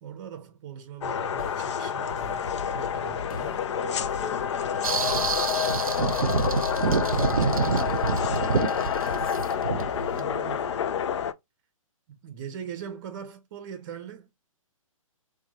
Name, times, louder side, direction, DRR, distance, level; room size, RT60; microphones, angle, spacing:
voice 1, 0.0-2.5 2.7-3.7 10.1-10.8 12.2-14.3, right 8 dB, 40° right, 0.6 m, -41 dB
sound 1, 1.0-11.3, left 8 dB, 55° left, 0.4 m, -28 dB
sound 2, 1.4-10.8, left 4 dB, 85° left, 0.9 m, -41 dB
voice 2, 3.7-4.5 6.0-6.6 6.9-9.1, left 3 dB, 10° left, 1.1 m, -43 dB
sound 3, 4.8-10.2, right 5 dB, 85° right, 0.6 m, -27 dB
4.3 x 2.2 x 2.8 m
figure-of-eight pair, 130°, 18 cm